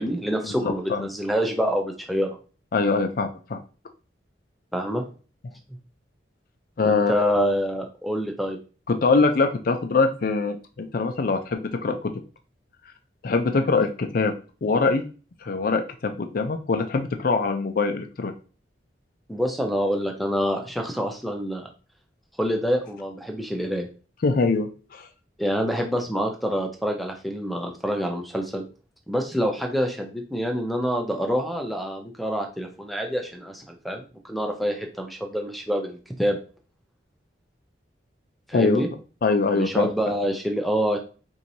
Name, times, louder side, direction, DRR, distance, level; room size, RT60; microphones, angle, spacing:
voice 1, 0.0-2.4 4.7-5.0 6.8-8.6 13.6-13.7 19.3-21.7 22.4-23.9 25.4-28.6 29.1-36.4 38.5-38.9 39.5-41.0, equal, ahead, 3 dB, 0.5 m, -26 dB
voice 2, 0.6-1.1 2.7-3.6 6.8-7.3 8.9-12.1 13.2-14.3 14.6-15.0 15.4-18.3 24.2-25.1 38.5-38.8 39.2-39.9, left 4 dB, 50° left, 6 dB, 0.4 m, -23 dB
4.5 x 2.7 x 2.7 m, 0.36 s
head